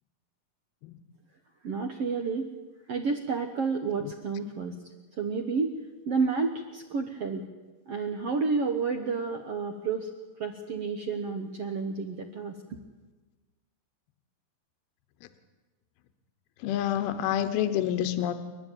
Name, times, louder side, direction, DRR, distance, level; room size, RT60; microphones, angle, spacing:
voice 1, 1.6-2.5 2.9-4.8 5.2-5.7 6.1-7.5 7.9-10.1 10.4-12.8, right 4 dB, 70° right, 5 dB, 1.5 m, -30 dB
voice 2, 16.6-18.3, left 11 dB, 80° left, 9 dB, 2.9 m, -28 dB
30.0 x 11.0 x 9.1 m, 1.2 s
omnidirectional pair, 4.5 m